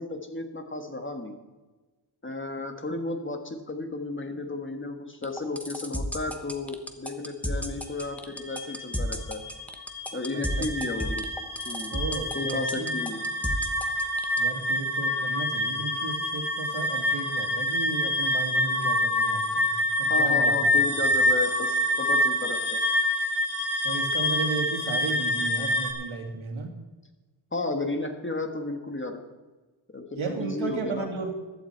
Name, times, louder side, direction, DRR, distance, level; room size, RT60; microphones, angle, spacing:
voice 1, 0.0-1.3 2.2-9.4 10.1-11.3 11.6-12.0 12.3-13.2 20.1-22.8 27.5-29.2 29.9-31.1, left 2 dB, 25° left, 5 dB, 1.4 m, -33 dB
sound 1, 5.2-14.4, equal, 5° left, 1.1 m, -32 dB
sound 2, 8.0-25.9, left 1 dB, 55° left, 2.8 m, -27 dB
voice 2, 10.3-10.7 11.9-12.9 14.4-19.7 20.0-20.5 23.8-26.7 30.2-31.3, right 4 dB, 80° right, 3 dB, 2.5 m, -34 dB
15.5 x 12.0 x 4.6 m, 1.2 s
wide cardioid pair, 160°, 47 cm